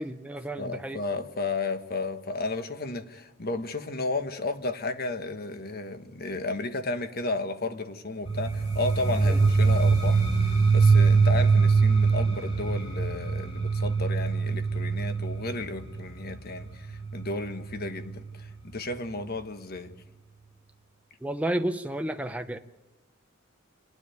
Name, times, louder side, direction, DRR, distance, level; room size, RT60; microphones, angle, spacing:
voice 1, 0.0-1.0 9.2-9.4 21.2-22.6, right 1 dB, 5° right, 7 dB, 0.6 m, -31 dB
voice 2, 0.6-10.2 10.7-20.0, left 2 dB, 50° left, 9 dB, 1.3 m, -33 dB
sound 1, 8.3-18.0, right 4 dB, 30° left, 4.5 m, -23 dB
28.5 x 9.7 x 9.3 m, 1.1 s
head